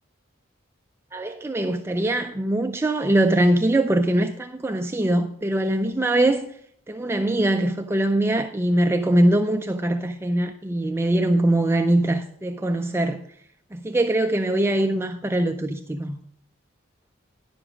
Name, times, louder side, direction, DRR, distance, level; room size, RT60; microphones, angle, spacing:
voice 1, 1.1-6.5 6.9-13.2 13.7-16.2, right 1 dB, 15° right, 0.4 m, -22 dB
10.5 x 7.0 x 5.0 m
head